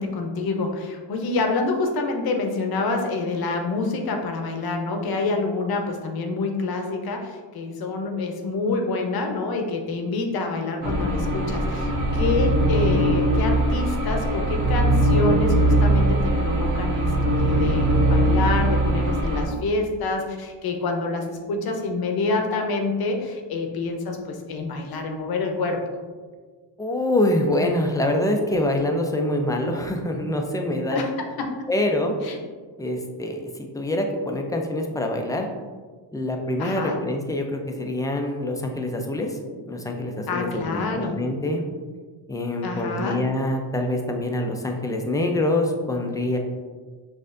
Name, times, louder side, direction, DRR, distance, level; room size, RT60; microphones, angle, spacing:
voice 1, 0.0-25.8 30.9-31.1 31.4-31.5 32.2-32.4 36.6-37.0 40.3-41.1 42.6-43.2, left 3 dB, 55° left, 4 dB, 0.8 m, -27 dB
sound 1, 10.8-19.4, right 1 dB, 45° right, 1.1 m, -21 dB
voice 2, 26.8-31.0 31.7-32.2 32.8-35.5 36.1-39.4 39.6-41.6 42.3-46.4, left 1 dB, 10° left, 3 dB, 0.3 m, -25 dB
6.4 x 2.5 x 2.5 m, 1.5 s
cardioid pair, 110°, 44 cm